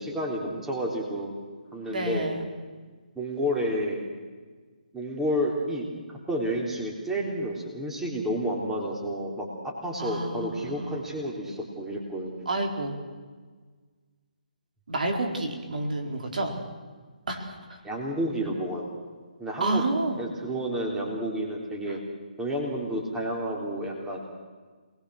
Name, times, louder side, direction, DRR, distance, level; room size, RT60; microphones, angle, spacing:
voice 1, 0.0-1.3 1.7-2.3 3.2-4.0 4.9-12.5 17.8-18.8 19.4-19.8 20.2-22.0 22.4-24.2, equal, 5° right, -2 dB, 3.6 m, -30 dB
voice 2, 1.9-2.4 10.0-11.0 12.5-13.0 14.9-16.6 17.3-17.8 19.6-20.2, right 2 dB, 70° right, 3 dB, 4.4 m, -29 dB
27.5 x 20.0 x 6.5 m, 1.5 s
hypercardioid pair, 150°, 5 cm